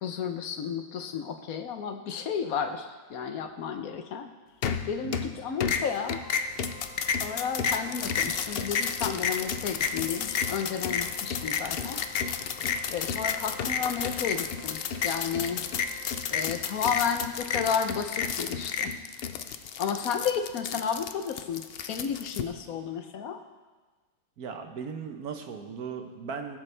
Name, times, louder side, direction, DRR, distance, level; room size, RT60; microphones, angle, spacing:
voice 1, 0.0-4.3 4.8-6.2 7.2-12.3 12.9-15.7 16.3-18.9 19.8-23.4, left 7 dB, 65° left, 7 dB, 1.1 m, -32 dB
sound 1, 4.6-5.3 5.6-22.4, left 6 dB, 85° left, 0.5 m, -31 dB
Wind instrument woodwind instrument, 6.1-16.7, left 2 dB, 40° left, 1.8 m, -50 dB
voice 2, 24.4-26.6, right 6 dB, 70° right, 5 dB, 1.4 m, -37 dB
18.0 x 8.1 x 3.3 m, 1.3 s
omnidirectional pair, 1.7 m